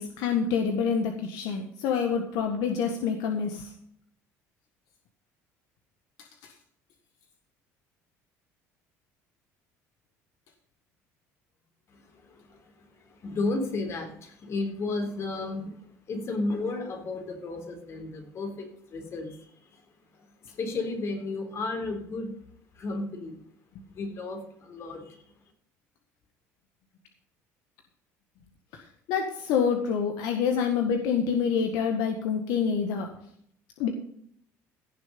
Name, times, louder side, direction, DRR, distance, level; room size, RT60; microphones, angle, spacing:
voice 1, 0.0-3.7 29.1-33.1 33.8-33.9, left 6 dB, 80° left, 4 dB, 1.7 m, -27 dB
voice 2, 13.2-14.1 14.4-15.7 16.1-18.7 18.9-19.3 20.6-22.3 22.8-23.3 23.9-24.4 24.7-25.0, left 3 dB, 45° left, 4 dB, 3.9 m, -32 dB
16.5 x 7.1 x 5.4 m, 0.66 s
cardioid pair, 115°, 6 cm